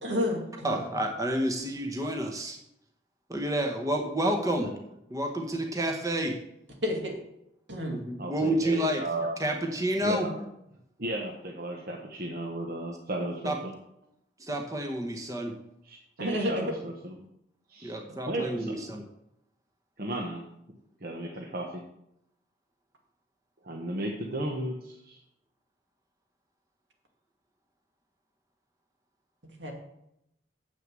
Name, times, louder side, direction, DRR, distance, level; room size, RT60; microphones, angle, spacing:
voice 1, 0.0-0.8 6.8-7.2 7.7-8.0 16.2-16.6 29.6-29.7, left 1 dB, 80° right, 1 dB, 2.2 m, -30 dB
voice 2, 0.6-2.6 3.3-4.7 5.1-6.4 7.9-9.0 9.4-10.5 13.4-13.6 14.4-15.5 17.8-19.0, right 1 dB, 20° right, 3 dB, 0.9 m, -29 dB
voice 3, 8.2-9.4 10.0-10.3 11.0-13.7 15.8-17.2 17.7-18.8 20.0-20.5 21.0-21.8 23.6-25.2, right 1 dB, 50° right, 1 dB, 1.0 m, -34 dB
7.6 x 6.5 x 7.5 m, 0.81 s
head